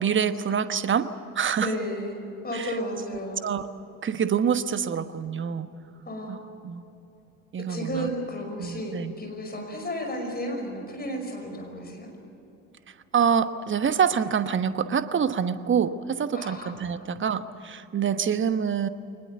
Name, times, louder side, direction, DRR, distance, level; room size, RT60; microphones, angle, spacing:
voice 1, 0.0-1.7 2.5-2.7 3.4-3.7 4.0-5.7 6.3-6.4 6.6-6.9 7.5-8.1 8.6-9.1 13.1-18.9, right 7 dB, 25° right, 12 dB, 1.2 m, -26 dB
voice 2, 1.6-3.5 6.0-6.4 7.6-12.1 16.3-17.1, equal, 20° left, 3 dB, 5.5 m, -33 dB
24.0 x 20.5 x 8.1 m, 2.9 s
figure-of-eight pair, 60°, 43 cm